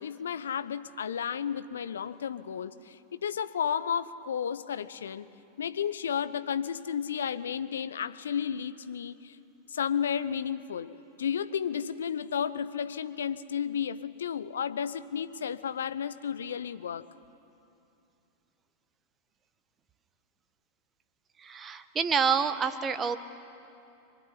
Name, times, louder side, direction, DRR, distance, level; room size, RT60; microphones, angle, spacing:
voice 1, 0.0-5.3 5.6-9.4 9.7-17.0, left 8 dB, 65° left, 13 dB, 0.9 m, -32 dB
voice 2, 21.4-23.2, right 6 dB, 20° right, 11 dB, 1.3 m, -28 dB
26.0 x 23.0 x 9.9 m, 2.7 s
figure-of-eight pair, 90°, 0 cm